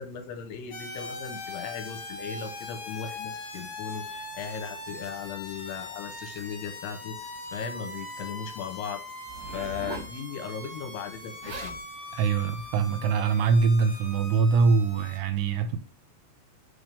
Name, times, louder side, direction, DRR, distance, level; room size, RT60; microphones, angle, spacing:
voice 1, 0.0-7.1 7.5-9.0 9.5-11.8, left 7 dB, 80° left, 2.7 m, -37 dB
sound 1, 0.7-15.2, left 2 dB, 55° left, 2.5 m, -41 dB
Zipper (clothing), 9.3-10.1 11.1-11.2 11.4-11.8 12.5-12.7, right 2 dB, 65° right, 2.8 m, -39 dB
voice 2, 12.1-15.8, right 5 dB, 80° right, 2.6 m, -23 dB
6.0 x 3.5 x 5.2 m
omnidirectional pair, 4.9 m